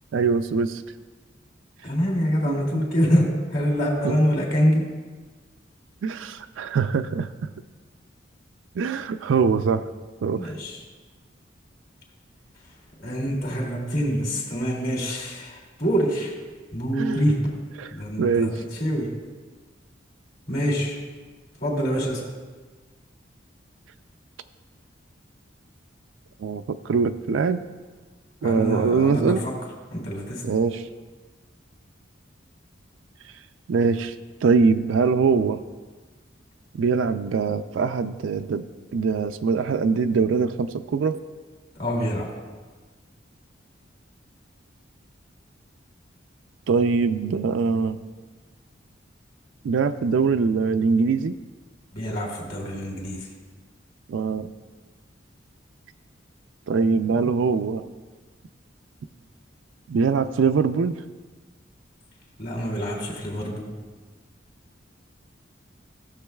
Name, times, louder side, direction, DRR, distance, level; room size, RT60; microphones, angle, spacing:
voice 1, 0.1-0.8 2.5-2.6 4.0-4.2 6.0-7.3 8.8-9.9 10.2-10.5 17.0-17.2 17.8-17.9 18.2-18.5 26.4-27.6 28.4-29.4 30.4-30.9 33.7-34.1 34.4-35.6 36.7-38.7 38.9-41.2 46.7-48.0 49.6-51.4 54.1-54.5 56.7-57.8 59.9-61.0, right 5 dB, 85° right, 9 dB, 0.4 m, -22 dB
voice 2, 1.8-4.9 10.3-10.8 13.0-16.3 16.7-17.4 17.9-19.1 20.5-21.0 21.6-22.3 28.4-29.5 29.9-30.5 41.7-42.3 51.9-53.3 62.4-63.7, equal, 50° left, -1 dB, 2.5 m, -25 dB
16.5 x 7.2 x 2.3 m, 1.4 s
head